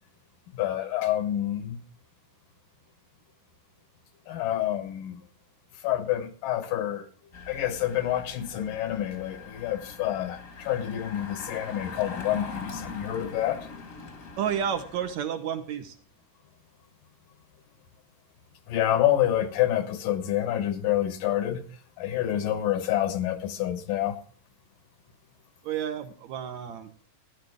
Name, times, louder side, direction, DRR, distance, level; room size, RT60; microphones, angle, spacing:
voice 1, 0.5-1.8 4.3-5.2 5.8-7.1 7.5-13.7 18.7-21.6 22.0-24.2, left 12 dB, 80° left, 2.9 m, -28 dB
Engine, 7.3-15.1, left 4 dB, 40° left, 1.2 m, -42 dB
voice 2, 14.4-16.0 25.6-26.9, right 8 dB, 70° right, 2.1 m, -31 dB
14.5 x 11.0 x 3.5 m
omnidirectional pair, 3.8 m